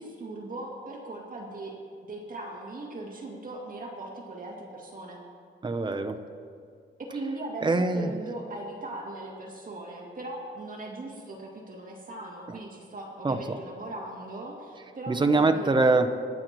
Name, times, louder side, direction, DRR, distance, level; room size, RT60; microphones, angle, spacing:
voice 1, 0.0-1.7 2.0-5.2 7.1-15.9, right 2 dB, 45° right, -3 dB, 2.2 m, -39 dB
voice 2, 5.6-6.3 7.6-8.1 12.5-12.6 13.2-13.6 15.1-16.3, right 3 dB, 25° right, 7 dB, 0.6 m, -24 dB
25.0 x 9.0 x 3.0 m, 2.2 s
wide cardioid pair, 160°, 20 cm